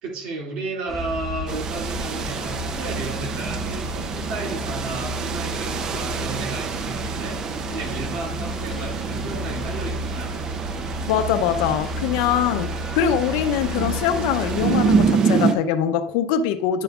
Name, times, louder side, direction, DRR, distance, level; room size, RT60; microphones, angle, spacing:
voice 1, 0.0-10.4, right 3 dB, 55° right, 2.2 m, -33 dB
sound 1, 0.9-15.1, equal, 10° left, 1.3 m, -32 dB
sound 2, 1.5-15.5, right 6 dB, 30° right, 0.5 m, -27 dB
voice 2, 11.1-16.8, left 9 dB, 70° left, 0.5 m, -23 dB
10.5 x 7.0 x 2.4 m
cardioid pair, 170°, 2 cm